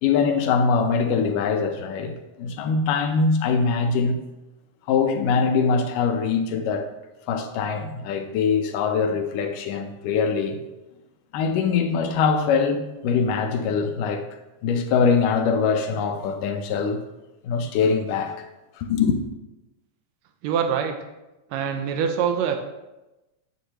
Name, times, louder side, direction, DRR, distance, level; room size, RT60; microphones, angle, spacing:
voice 1, 0.0-4.2 4.9-6.9 7.3-10.6 11.3-14.2 14.6-17.0 17.4-18.5 18.8-19.2, left 5 dB, 80° left, 2.3 m, -23 dB
voice 2, 20.4-20.9 21.5-22.6, right 7 dB, 90° right, 1.5 m, -24 dB
8.3 x 8.1 x 3.0 m
omnidirectional pair, 3.9 m